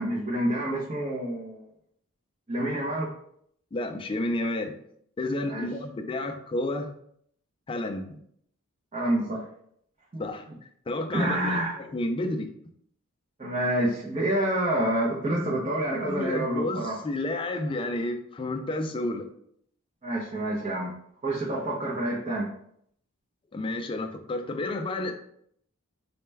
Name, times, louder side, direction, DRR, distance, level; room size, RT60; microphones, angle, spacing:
voice 1, 0.0-1.6 2.5-3.1 5.5-5.7 8.9-9.5 10.1-10.2 11.1-11.8 13.4-17.0 20.0-20.9 21.2-22.5, right 1 dB, 30° right, -5 dB, 0.6 m, -28 dB
voice 2, 3.7-4.8 5.2-6.9 7.7-8.1 10.2-10.5 10.9-12.5 16.0-19.3 23.5-25.1, left 2 dB, 25° left, 6 dB, 0.3 m, -31 dB
4.1 x 2.2 x 3.3 m, 0.68 s
head